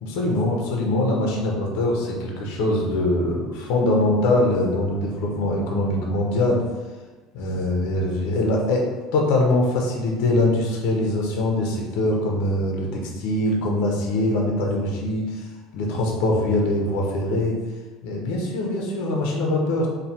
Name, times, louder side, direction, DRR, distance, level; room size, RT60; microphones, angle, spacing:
voice 1, 0.0-6.6 7.3-8.9 9.1-15.5 15.7-17.6 18.0-19.9, left 1 dB, 70° left, -1 dB, 0.6 m, -23 dB
3.1 x 2.1 x 2.7 m, 1.2 s
cardioid pair, 170°, 0 cm